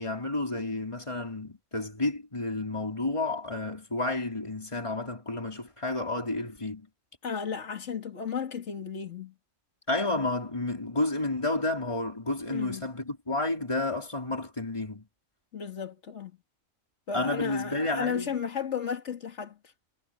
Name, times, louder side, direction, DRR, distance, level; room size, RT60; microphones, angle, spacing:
voice 1, 0.0-6.9 9.9-15.0 17.1-18.4, left 2 dB, 20° left, 4.3 m, -31 dB
voice 2, 7.2-9.3 12.5-12.8 15.5-16.3 17.1-19.6, left 7 dB, 60° left, 2.4 m, -34 dB
omnidirectional pair, 1.4 m